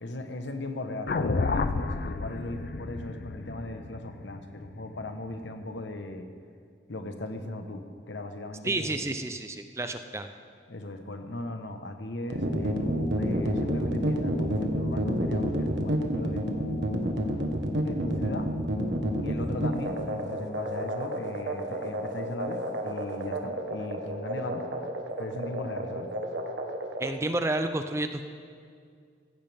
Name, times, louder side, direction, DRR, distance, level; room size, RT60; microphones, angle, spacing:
voice 1, 0.0-6.3 6.9-9.1 10.7-17.1 17.8-18.5 19.2-24.6 25.2-26.1, left 1 dB, 80° left, 7 dB, 1.1 m, -37 dB
sound 1, 1.1-5.3, left 3 dB, 55° left, 0.5 m, -31 dB
voice 2, 8.6-10.3 27.0-28.2, right 2 dB, 15° right, 8 dB, 0.5 m, -30 dB
sound 2, 12.3-27.1, right 1 dB, 75° right, 1.3 m, -29 dB
16.0 x 15.5 x 3.5 m, 2.2 s
head